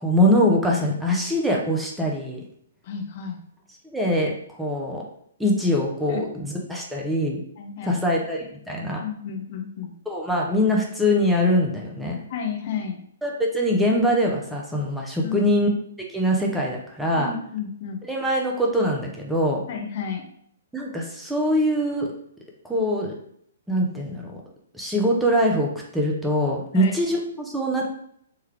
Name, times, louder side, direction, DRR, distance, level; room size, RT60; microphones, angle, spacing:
voice 1, 0.0-2.4 3.8-5.0 5.4-7.4 7.8-9.0 10.1-12.2 13.2-15.7 16.1-17.3 18.1-19.6 20.7-22.1 22.6-23.1 23.7-24.3 24.7-27.9, equal, 5° right, -2 dB, 0.5 m, -23 dB
voice 2, 2.8-3.4 6.1-6.2 7.6-8.0 9.0-9.9 12.3-13.0 15.2-15.3 17.2-18.0 19.7-20.2 26.7-26.9, left 7 dB, 45° left, 2 dB, 0.6 m, -32 dB
3.2 x 2.3 x 3.2 m, 0.68 s
figure-of-eight pair, 120°, 0 cm